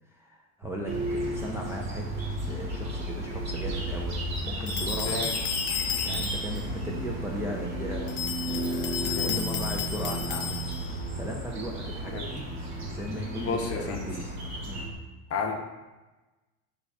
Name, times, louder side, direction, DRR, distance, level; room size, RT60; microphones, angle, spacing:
voice 1, 0.1-5.3 6.1-10.6 11.1-12.5 12.8-14.9, equal, 5° right, -2 dB, 0.5 m, -37 dB
sound 1, 0.6-14.9, right 1 dB, 75° right, 0.8 m, -40 dB
sound 2, 0.9-14.9, right 1 dB, 45° right, 1.2 m, -34 dB
sound 3, 4.7-6.6 8.1-11.0, left 8 dB, 80° left, 0.5 m, -33 dB
voice 2, 13.4-14.0 15.3-15.6, left 5 dB, 40° left, 3 dB, 0.7 m, -31 dB
3.9 x 2.4 x 4.6 m, 1.1 s
supercardioid pair, 85°, 37 cm